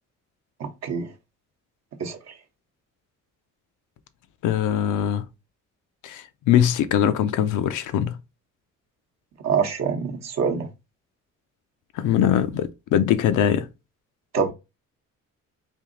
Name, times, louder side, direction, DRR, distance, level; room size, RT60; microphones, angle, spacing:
voice 1, 0.6-1.1 2.0-2.2 9.4-10.7 14.3-14.5, right 6 dB, 60° right, 0.8 m, -25 dB
voice 2, 4.4-5.3 6.0-8.2 11.9-13.7, left 10 dB, 85° left, 0.6 m, -22 dB
3.6 x 2.8 x 3.7 m
cardioid pair, 90°, 30 cm